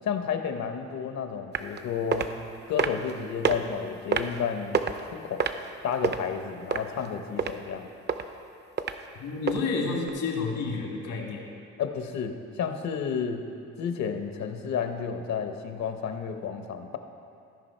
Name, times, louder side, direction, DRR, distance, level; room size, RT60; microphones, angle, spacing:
voice 1, 0.0-2.3 2.7-5.5 5.8-7.9 11.8-13.5 13.8-17.0, left 7 dB, 65° left, 6 dB, 0.9 m, -31 dB
sound 1, 1.5-1.8 2.1-2.3 2.8-3.1 3.4-3.6 4.1-4.4 4.7-5.0 5.4-6.2 6.7-7.1 7.4-7.5 8.1-8.2 8.8-8.9 9.5-9.6 10.1-10.2, right 6 dB, 35° right, 0.5 m, -26 dB
voice 2, 9.2-11.4, left 4 dB, 80° left, 0 dB, 1.7 m, -30 dB
14.5 x 5.2 x 4.3 m, 2.5 s
cardioid pair, 90°, 30 cm